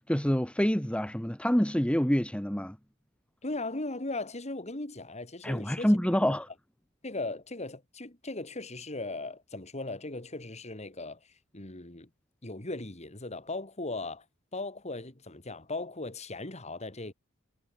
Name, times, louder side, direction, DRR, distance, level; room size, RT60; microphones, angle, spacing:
voice 1, 0.0-2.8 5.4-6.5, equal, 5° left, 1.2 m, -27 dB
voice 2, 3.4-5.9 6.3-6.4 7.0-11.2 11.5-12.1 12.4-14.2 14.5-17.1, left 2 dB, 30° left, 2.3 m, -38 dB
head